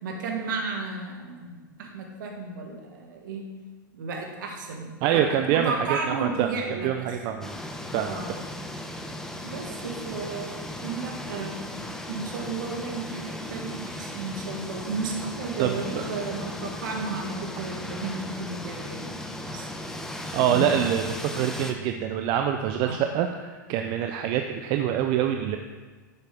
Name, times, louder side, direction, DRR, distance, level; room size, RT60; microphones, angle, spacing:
voice 1, 0.0-3.4 3.9-7.1 8.0-8.3 9.4-19.1 19.4-20.0 20.5-20.9 22.8-23.0, right 4 dB, 65° right, 1 dB, 2.1 m, -33 dB
voice 2, 5.0-7.6 7.9-8.5 15.6-16.1 20.3-25.6, right 9 dB, 45° right, 6 dB, 0.6 m, -26 dB
sound 1, 7.4-21.7, left 1 dB, 5° left, 0.9 m, -37 dB
10.5 x 8.2 x 3.7 m, 1.3 s
hypercardioid pair, 100°, 11 cm